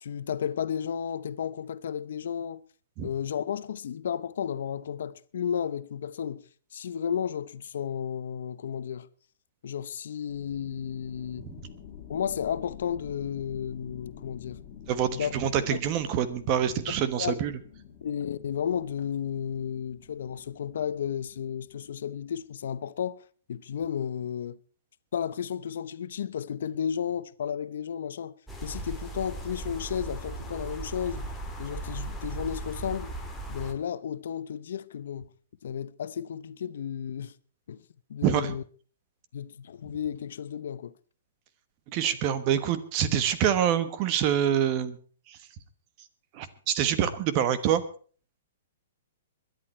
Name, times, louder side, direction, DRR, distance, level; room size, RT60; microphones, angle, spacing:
voice 1, 0.0-2.6 3.0-6.4 6.7-9.1 9.6-11.5 12.1-14.6 15.1-15.4 15.7-15.8 17.2-17.4 18.0-24.6 25.1-31.3 31.6-33.1 33.5-35.3 35.6-37.3 37.7-37.8 38.1-38.6 39.3-40.9, left 8 dB, 65° left, 0.8 m, -33 dB
sound 1, 10.3-22.5, left 8 dB, 30° left, 3.3 m, -48 dB
voice 2, 14.9-17.5 38.2-38.5 41.9-45.0 46.3-47.8, right 9 dB, 30° right, 1.2 m, -26 dB
sound 2, 28.5-33.7, right 2 dB, 5° left, 1.7 m, -37 dB
22.0 x 10.5 x 4.3 m
hypercardioid pair, 165°, 0 cm